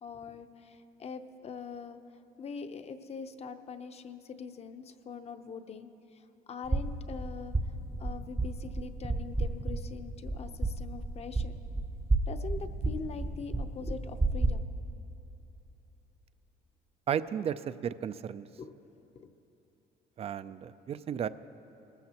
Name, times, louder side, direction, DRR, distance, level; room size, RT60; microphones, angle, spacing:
voice 1, 0.0-2.0 2.4-5.9 6.5-7.5 8.0-11.5 12.3-14.7 18.6-18.7 19.2-19.3, left 5 dB, 40° left, 9 dB, 0.7 m, -43 dB
sound 1, 6.6-14.5, right 2 dB, 15° right, 0.7 m, -32 dB
voice 2, 17.1-18.5 20.2-21.3, right 8 dB, 35° right, 15 dB, 0.4 m, -34 dB
21.0 x 13.5 x 2.9 m, 2.9 s
cardioid pair, 110°, 17 cm